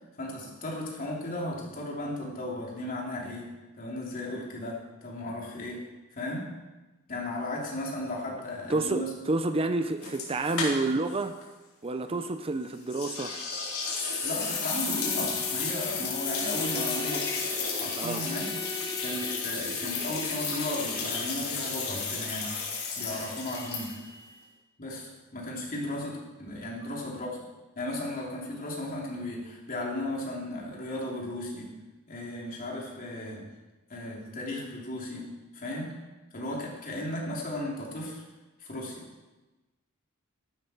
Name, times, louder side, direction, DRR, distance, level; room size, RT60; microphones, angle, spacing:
voice 1, 0.2-3.5 3.8-5.8 6.1-6.5 7.1-9.1 14.2-18.5 19.0-22.5 23.0-24.0 24.8-27.3 27.8-31.7 32.1-33.4 33.9-35.9 36.3-38.2 38.6-39.1, left 1 dB, 40° left, -2 dB, 3.2 m, -35 dB
voice 2, 8.7-11.4 11.8-13.4 16.7-16.8 18.0-18.2, right 2 dB, 25° right, 9 dB, 0.5 m, -29 dB
sound 1, 10.0-11.1 11.4-11.5 12.9-24.2, left 4 dB, 85° left, 3.9 m, -33 dB
Bowed string instrument, 14.9-19.6, left 2 dB, 20° left, 0.7 m, -40 dB
14.0 x 12.0 x 4.5 m, 1.1 s
head